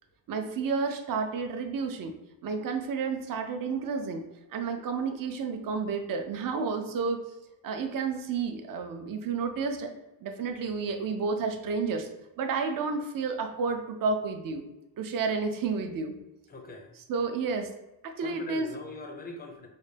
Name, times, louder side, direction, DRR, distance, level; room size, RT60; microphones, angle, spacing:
voice 1, 0.3-2.1 2.4-4.2 4.5-7.3 7.6-9.9 10.2-12.1 12.4-14.6 15.0-16.1 17.1-17.7 18.0-18.8, right 4 dB, 50° right, 5 dB, 0.5 m, -31 dB
voice 2, 16.5-16.9 18.2-19.7, left 2 dB, 20° left, 3 dB, 0.4 m, -42 dB
4.0 x 2.1 x 3.2 m, 0.93 s
wide cardioid pair, 155°, 44 cm